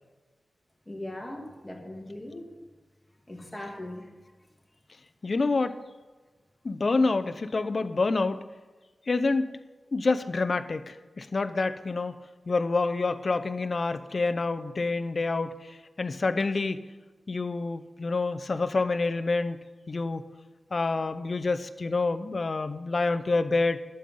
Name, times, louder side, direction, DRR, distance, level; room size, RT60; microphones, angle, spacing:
voice 1, 0.9-2.5 3.3-4.1, left 1 dB, 10° left, -1 dB, 2.6 m, -39 dB
voice 2, 5.2-5.8 6.6-8.4 9.1-9.5 9.9-12.1 12.5-16.8 17.3-19.6 19.9-20.3 20.7-23.8, left 3 dB, 50° left, 10 dB, 0.6 m, -27 dB
12.0 x 5.5 x 7.8 m, 1.3 s
wide cardioid pair, 90°, 0 cm